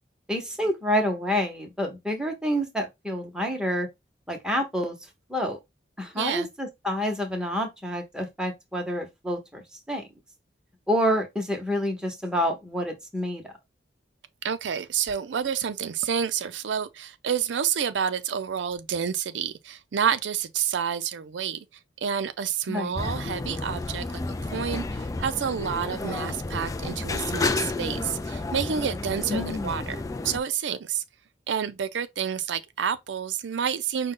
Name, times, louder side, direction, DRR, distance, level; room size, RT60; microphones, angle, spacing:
voice 1, 0.3-3.9 4.3-5.0 5.3-5.6 6.0-9.6 9.9-10.0 10.9-13.4 22.7-22.9 29.3-29.9, equal, 5° right, 0.9 m, -28 dB
voice 2, 6.1-6.5 14.4-21.7 22.0-24.1 24.4-30.0 30.2-31.0 31.5-34.1, right 7 dB, 85° right, 0.4 m, -29 dB
sound 1, 23.0-30.4, left 3 dB, 20° left, 0.3 m, -31 dB
5.1 x 2.2 x 3.7 m
head